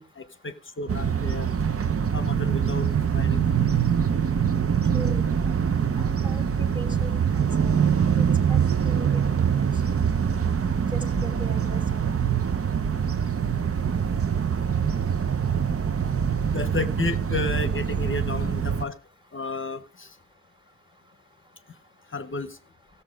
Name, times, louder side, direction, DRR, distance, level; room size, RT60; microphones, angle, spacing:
voice 1, 0.0-1.5 2.1-2.9 3.1-3.5 16.5-19.0 19.3-20.1 22.1-22.6, left 3 dB, 40° left, 12 dB, 0.8 m, -32 dB
sound 1, 0.9-18.8, right 7 dB, 45° right, 0.6 m, -24 dB
voice 2, 4.9-5.7 6.0-7.8 8.2-8.6 8.8-9.2 10.9-12.0, equal, 15° right, 8 dB, 1.5 m, -40 dB
15.5 x 6.9 x 5.0 m, 0.39 s
wide cardioid pair, 100°, 32 cm